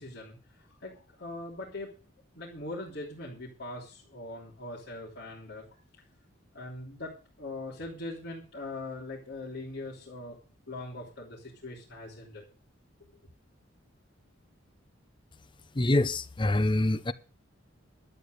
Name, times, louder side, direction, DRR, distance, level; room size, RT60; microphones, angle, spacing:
voice 1, 0.0-1.9 2.3-5.8 6.5-10.4 10.7-12.4, left 2 dB, 60° left, 3.2 m, -41 dB
voice 2, 15.8-17.1, left 1 dB, 25° left, 0.7 m, -25 dB
12.0 x 8.8 x 6.5 m
head